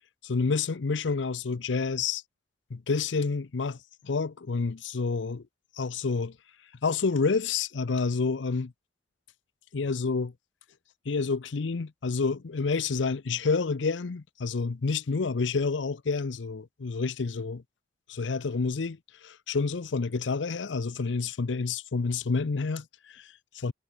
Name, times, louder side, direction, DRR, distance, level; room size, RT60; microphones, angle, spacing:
voice 1, 0.2-2.2 2.7-3.8 4.0-5.4 5.8-6.3 6.8-8.7 9.7-10.3 11.1-17.6 18.1-23.7, left 4 dB, 75° left, 0.6 m, -29 dB
head